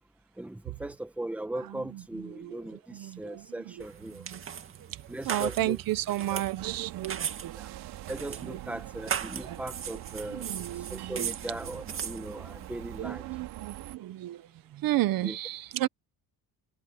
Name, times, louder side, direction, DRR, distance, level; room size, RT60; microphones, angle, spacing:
voice 1, 0.4-4.2 5.1-5.8 6.3-6.4 7.6-7.7 8.1-10.5 10.9-13.2 15.2-15.4, right 1 dB, 5° right, 1.4 m, -38 dB
voice 2, 1.5-3.9 4.1-7.9 8.4-8.6 9.4-9.6 10.3-11.3 13.0-15.9, right 15 dB, 60° right, 1.0 m, -34 dB
sound 1, 3.8-13.0, right 8 dB, 35° right, 2.0 m, -39 dB
sound 2, 6.6-14.0, right 15 dB, 80° right, 3.1 m, -44 dB
cardioid pair, 175°, 38 cm